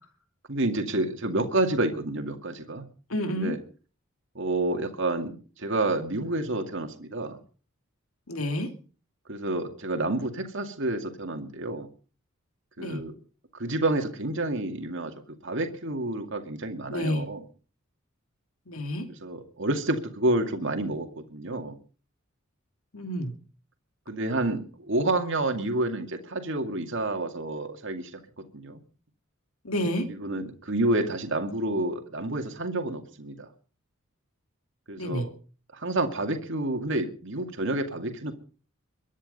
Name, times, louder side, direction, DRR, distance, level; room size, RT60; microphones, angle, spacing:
voice 1, 0.5-2.8 3.4-3.6 4.3-7.4 9.3-11.9 12.8-13.2 13.5-15.1 15.4-17.4 19.2-21.8 24.1-28.1 28.4-28.8 30.1-33.5 34.9-35.3 35.7-38.3, right 2 dB, 60° right, 5 dB, 2.3 m, -29 dB
voice 2, 3.1-3.6 8.3-8.7 12.8-13.0 16.9-17.2 18.7-19.1 22.9-23.3 29.6-30.1 35.0-35.3, equal, 80° left, 7 dB, 2.7 m, -29 dB
23.0 x 10.0 x 5.4 m, 0.40 s
head